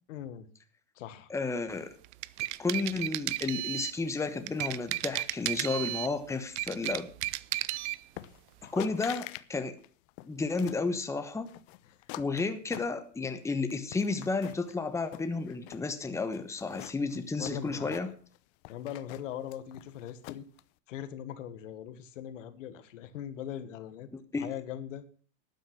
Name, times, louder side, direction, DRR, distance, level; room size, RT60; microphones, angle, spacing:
voice 1, 0.1-0.5 1.0-1.3 8.6-8.9 11.9-12.0 17.4-18.1 18.7-20.5 20.9-24.1 24.4-25.0, left 10 dB, 85° left, 11 dB, 1.6 m, -40 dB
voice 2, 1.3-1.9 2.6-7.1 8.7-9.2 9.5-9.8 10.2-11.5 12.2-18.1 24.1-24.5, left 3 dB, 10° left, 8 dB, 1.1 m, -32 dB
sound 1, 2.0-4.0 4.5-6.1 6.5-8.0, right 18 dB, 65° right, 0.7 m, -34 dB
sound 2, 8.2-8.5 8.8-9.5 9.8-10.9 11.5-13.3 13.7-14.7 15.1-15.9 16.3-18.4 18.6-20.6, left 18 dB, 60° left, 0.8 m, -45 dB
12.0 x 9.3 x 6.0 m, 0.41 s
supercardioid pair, 130°, 37 cm